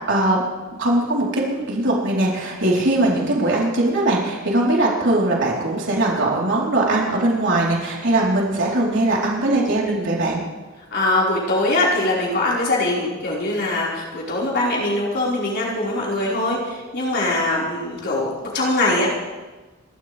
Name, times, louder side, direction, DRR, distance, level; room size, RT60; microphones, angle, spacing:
voice 1, 0.1-0.4 0.8-10.4, right 2 dB, 65° right, -4 dB, 4.2 m, -20 dB
voice 2, 10.9-19.1, left 2 dB, 55° left, -6 dB, 5.3 m, -22 dB
29.5 x 12.5 x 3.6 m, 1.2 s
head